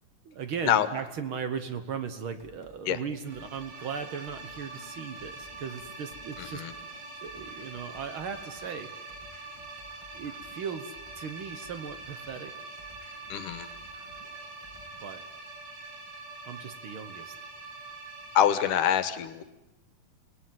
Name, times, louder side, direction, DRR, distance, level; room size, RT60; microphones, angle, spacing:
voice 1, 0.2-6.6 7.2-9.1 10.1-12.6 15.0-15.2 16.5-17.3, right 6 dB, 60° right, 10 dB, 1.5 m, -37 dB
sound 1, 2.4-14.9, equal, 10° right, 3.0 m, -56 dB
sound 2, 3.2-18.9, right 3 dB, 80° right, 4.8 m, -44 dB
voice 2, 6.4-6.7 13.3-13.7 18.3-19.4, left 10 dB, 80° left, 13 dB, 2.7 m, -25 dB
28.0 x 19.0 x 9.4 m, 1.0 s
omnidirectional pair, 3.7 m